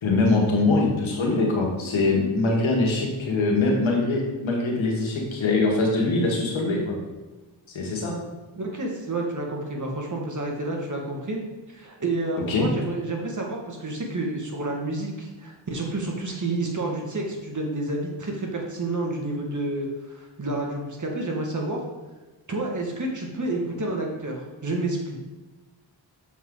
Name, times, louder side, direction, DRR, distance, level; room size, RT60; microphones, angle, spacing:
voice 1, 0.0-6.9 7.7-8.2 12.5-12.7, left 3 dB, 80° left, -1 dB, 1.7 m, -23 dB
voice 2, 8.5-11.4 11.7-21.8 22.5-25.2, right 2 dB, 40° right, 0 dB, 1.8 m, -29 dB
6.9 x 4.5 x 3.8 m, 1.2 s
cardioid pair, 45°, 46 cm